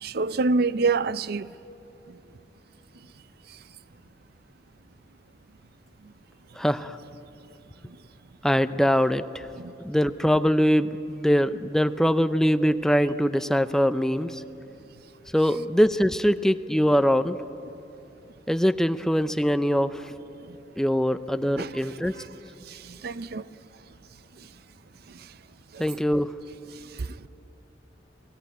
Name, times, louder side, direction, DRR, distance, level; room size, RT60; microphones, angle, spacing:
voice 1, 0.0-1.5 9.6-9.7 21.6-21.7 23.0-23.4, right 3 dB, 60° right, 0.5 m, -25 dB
voice 2, 6.6-7.0 8.4-9.5 9.8-14.4 15.3-17.4 18.5-20.1 20.8-22.2 25.8-26.4, equal, 5° left, 0.5 m, -23 dB
27.5 x 20.0 x 9.2 m
head